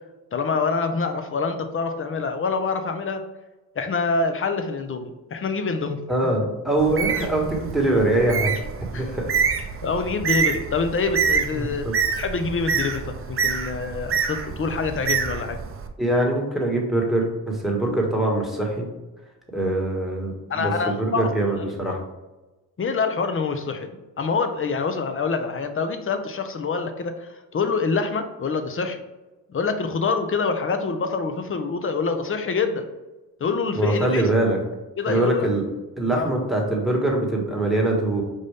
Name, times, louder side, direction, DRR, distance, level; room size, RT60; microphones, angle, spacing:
voice 1, 0.3-3.2 3.8-6.0 8.9-9.1 9.8-11.9 12.2-15.6 20.5-21.3 22.8-23.9 24.2-29.0 29.5-32.9 33.4-34.3 35.0-35.5 36.1-36.3, left 4 dB, 30° left, 7 dB, 0.6 m, -26 dB
voice 2, 6.1-9.3 11.5-11.9 16.0-18.9 19.5-22.0 33.7-34.6 35.1-35.6 36.0-38.2, right 2 dB, ahead, -1 dB, 1.4 m, -23 dB
Bird, 6.8-15.9, right 6 dB, 35° right, 0.5 m, -27 dB
5.4 x 2.6 x 3.4 m, 1.1 s
cardioid pair, 75°, 40 cm